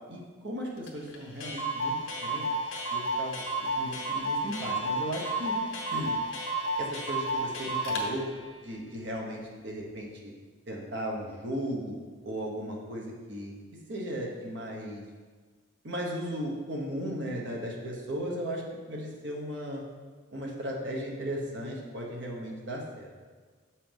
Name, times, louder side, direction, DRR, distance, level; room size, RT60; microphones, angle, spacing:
voice 1, 0.1-2.5 2.9-3.4 3.8-5.6 5.9-6.1 6.8-8.2 8.6-10.3 10.7-11.9 12.2-13.6 13.9-15.0 15.8-18.6 18.9-19.8 20.3-23.1, equal, 60° right, -1 dB, 1.2 m, -36 dB
Clock, 0.9-1.0 1.1-1.2 1.4-8.1, right 1 dB, 70° left, 1.0 m, -31 dB
6.8 x 5.7 x 3.5 m, 1.5 s
head